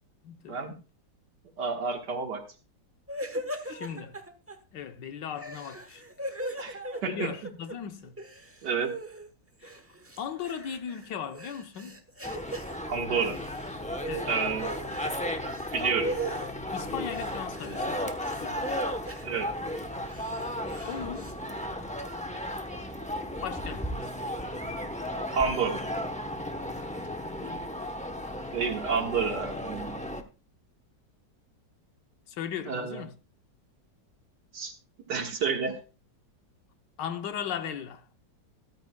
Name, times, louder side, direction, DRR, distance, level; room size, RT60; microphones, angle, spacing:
voice 1, 0.2-0.6 3.7-4.2 4.7-6.0 7.1-8.1 9.6-9.7 10.2-12.0 14.1-14.6 16.7-18.8 20.9-21.3 23.4-24.3 27.4-27.7 32.3-33.1 37.0-38.0, left 8 dB, 75° left, 1.5 m, -37 dB
voice 2, 1.6-2.4 6.6-7.3 8.6-8.9 12.8-13.4 14.3-14.7 15.7-16.1 19.2-19.5 25.3-25.8 28.5-30.0 32.7-33.0 34.5-34.7 35.1-35.8, right 5 dB, 70° right, 2.2 m, -29 dB
sound 1, 3.1-4.5 5.3-7.7 8.0-9.3 9.6-12.7 13.2-13.7 14.0-15.1 15.4-16.5 17.1-17.9 18.2-19.2 19.9-21.3, right 1 dB, 10° right, 0.7 m, -39 dB
sound 2, 12.2-30.2, left 1 dB, 10° left, 0.3 m, -35 dB
14.0 x 13.5 x 2.3 m
omnidirectional pair, 1.9 m